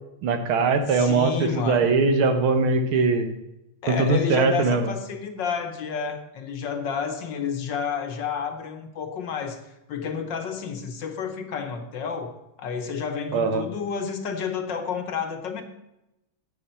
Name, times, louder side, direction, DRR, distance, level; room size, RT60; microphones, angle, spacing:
voice 1, 0.2-3.3 3.9-4.9 13.3-13.6, right 4 dB, 75° right, 7 dB, 1.8 m, -21 dB
voice 2, 0.9-2.0 3.8-9.6 9.9-15.6, left 6 dB, 65° left, 6 dB, 1.4 m, -30 dB
11.0 x 8.3 x 4.3 m, 0.90 s
omnidirectional pair, 2.4 m